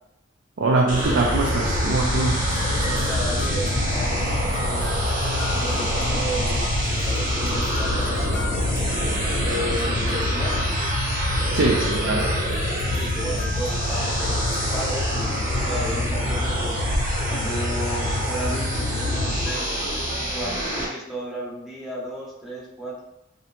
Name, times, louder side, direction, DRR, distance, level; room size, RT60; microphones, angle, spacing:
voice 1, 0.6-2.4 11.5-12.3, right 3 dB, 80° right, -1 dB, 0.4 m, -22 dB
sound 1, 0.9-20.9, right 1 dB, 45° right, 0.7 m, -27 dB
sound 2, 1.0-19.5, left 2 dB, 90° left, 0.3 m, -28 dB
sound 3, 2.3-11.2 11.6-14.7, left 2 dB, 30° left, 0.8 m, -39 dB
voice 2, 2.9-5.1 5.6-8.5 9.3-10.7 11.4-12.0 12.8-16.8 17.3-19.8 20.3-23.0, equal, ahead, -6 dB, 0.6 m, -34 dB
2.6 x 2.1 x 2.9 m, 0.86 s
head